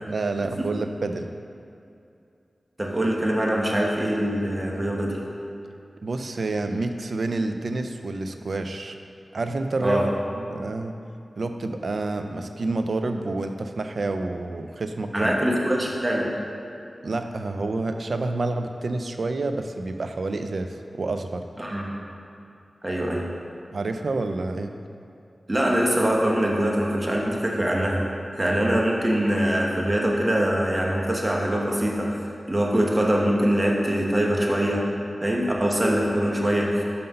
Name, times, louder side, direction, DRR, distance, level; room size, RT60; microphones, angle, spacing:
voice 1, 0.1-1.3 6.0-9.0 9.3-10.9 11.4-15.3 15.7-15.8 17.0-21.5 23.7-24.7, right 2 dB, 75° right, 6 dB, 0.4 m, -28 dB
voice 2, 2.8-5.2 9.8-10.1 15.1-16.3 21.6-21.9 22.8-23.3 25.5-28.0 28.3-32.2 32.5-34.9 35.2-36.8, right 1 dB, 30° right, -2 dB, 1.2 m, -23 dB
5.7 x 5.3 x 5.4 m, 2.6 s
wide cardioid pair, 55°, 0 cm